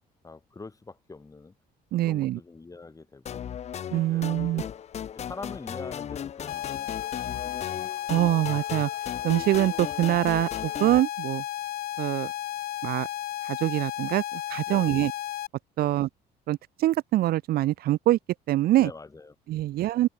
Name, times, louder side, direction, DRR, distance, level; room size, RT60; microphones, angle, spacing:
voice 1, 0.2-1.6 2.0-3.5 4.1-4.7 5.1-7.7 14.7-15.0 15.8-16.0 18.8-19.6, left 3 dB, 20° left, 5.5 m, -44 dB
voice 2, 1.9-2.4 3.9-4.6 8.1-8.9 9.2-10.5 10.8-11.4 12.0-12.3 12.8-13.1 13.4-15.1 15.8-16.1 16.5-18.2 18.5-18.9 19.5-20.1, right 15 dB, 65° right, 0.6 m, -24 dB
sound 1, 3.3-11.0, left 9 dB, 40° left, 0.7 m, -37 dB
sound 2, 6.5-15.5, left 13 dB, 65° left, 1.8 m, -33 dB
cardioid pair, 110°, 17 cm